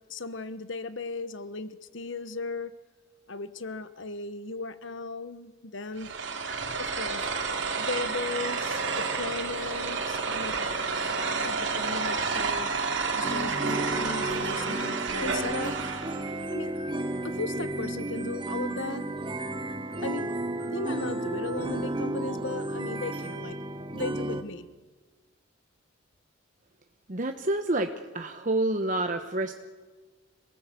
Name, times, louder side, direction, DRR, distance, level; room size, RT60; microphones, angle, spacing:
voice 1, 0.1-2.7 3.3-6.1 6.8-7.3 7.8-11.1 11.4-12.7 13.1-15.8 16.5-16.7 17.2-19.1 20.0-20.3 20.7-23.6 23.9-24.7, left 3 dB, 65° left, 13 dB, 1.2 m, -36 dB
sound 1, 6.0-16.3, right 4 dB, 60° right, 2.8 m, -30 dB
sound 2, 13.2-24.4, right 1 dB, 25° right, 1.4 m, -33 dB
voice 2, 27.1-29.5, right 2 dB, 40° right, 6 dB, 1.0 m, -28 dB
27.0 x 18.5 x 8.4 m, 1.3 s
head